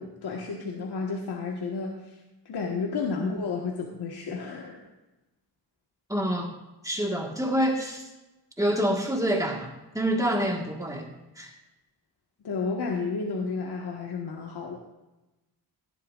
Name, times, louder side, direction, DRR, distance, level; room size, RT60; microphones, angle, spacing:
voice 1, 0.0-2.2 2.4-4.8 12.4-14.8, left 4 dB, 75° left, -1 dB, 1.6 m, -32 dB
voice 2, 6.1-6.5 6.8-8.1 8.6-9.7 9.9-11.1 11.4-11.5, equal, 10° right, 0 dB, 1.6 m, -26 dB
17.5 x 12.0 x 2.5 m, 1.0 s
wide cardioid pair, 165°, 39 cm